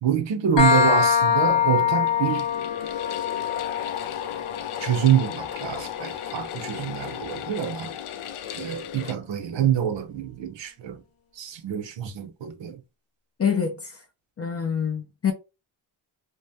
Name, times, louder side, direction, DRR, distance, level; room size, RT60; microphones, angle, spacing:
voice 1, 0.0-2.5 4.8-7.9 8.6-11.0 11.4-12.8, right 9 dB, 65° right, 0.6 m, -26 dB
sound 1, 0.6-8.0, left 7 dB, 60° left, 0.9 m, -25 dB
sound 2, 2.0-9.1, left 9 dB, 90° left, 0.6 m, -35 dB
voice 2, 13.4-14.0 14.4-15.3, left 7 dB, 35° left, 0.4 m, -26 dB
2.7 x 2.0 x 3.3 m
wide cardioid pair, 170°, 49 cm